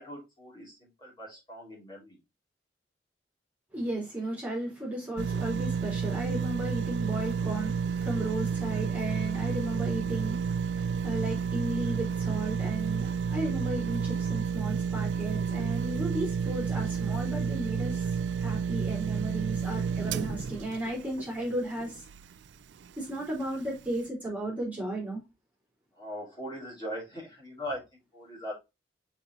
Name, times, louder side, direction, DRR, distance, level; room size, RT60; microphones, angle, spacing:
voice 1, 0.0-2.2 26.0-28.5, equal, 25° left, 3.5 m, -40 dB
voice 2, 3.7-22.0 23.0-25.2, right 1 dB, 10° right, 3.3 m, -35 dB
sound 1, 5.2-22.4 22.9-23.0, right 6 dB, 75° right, 0.4 m, -31 dB
5.7 x 5.4 x 3.2 m
head